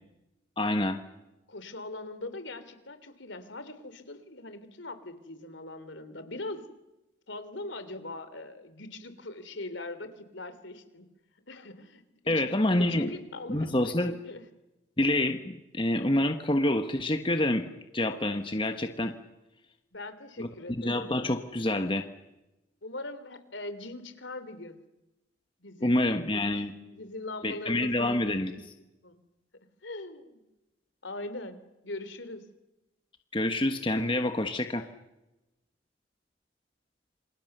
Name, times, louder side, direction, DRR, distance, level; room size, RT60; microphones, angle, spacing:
voice 1, 0.6-1.0 12.3-13.1 13.5-14.1 15.0-19.1 20.4-22.0 25.8-26.7 27.4-28.5 33.3-34.8, left 1 dB, 25° left, 6 dB, 1.4 m, -27 dB
voice 2, 1.5-6.6 7.3-11.1 11.5-14.4 19.9-21.0 22.8-24.8 25.6-26.1 26.5-28.7 29.0-29.2 29.8-30.4 31.0-32.4, left 2 dB, 75° left, 11 dB, 3.2 m, -41 dB
28.0 x 26.5 x 6.8 m, 0.97 s
head